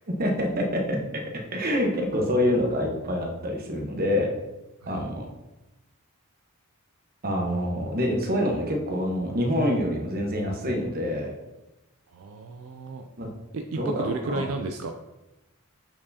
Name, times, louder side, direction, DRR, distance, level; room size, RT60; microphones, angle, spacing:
voice 1, 0.2-1.0 1.5-4.3 4.9-5.3 7.2-11.4 13.2-13.3 13.7-14.5, equal, 45° right, 1 dB, 1.1 m, -26 dB
voice 2, 12.1-13.1 13.5-14.9, right 3 dB, 65° right, 4 dB, 0.4 m, -33 dB
7.4 x 4.6 x 2.8 m, 1.0 s
head